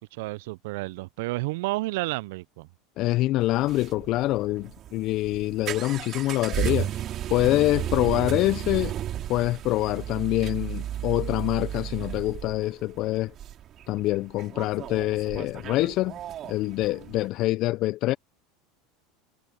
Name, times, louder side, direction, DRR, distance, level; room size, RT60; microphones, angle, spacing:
voice 1, 0.0-2.7, right 22 dB, 70° right, 0.5 m, -31 dB
voice 2, 3.0-8.9 9.3-13.3 13.9-16.1 16.5-18.1, left 17 dB, 55° left, 0.7 m, -25 dB
sound 1, 3.4-17.3, right 11 dB, 45° right, 3.6 m, -34 dB
hypercardioid pair, 80°, 0 cm